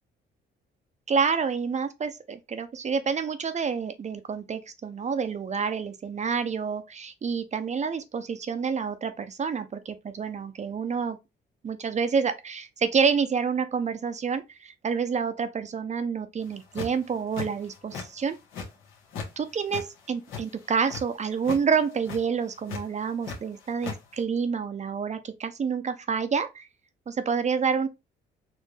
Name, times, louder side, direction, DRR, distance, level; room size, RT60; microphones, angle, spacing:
voice 1, 1.1-11.2 11.6-18.4 19.4-26.7 27.1-27.9, right 6 dB, 35° right, 0.5 m, -28 dB
sound 1, 16.5-17.0 17.3-18.1 18.3-19.3 19.6-21.0 21.4-21.6 21.9-22.2 22.7-23.4 23.6-24.0, left 5 dB, 90° left, 1.3 m, -36 dB
4.3 x 2.7 x 3.2 m
cardioid pair, 90°, 20 cm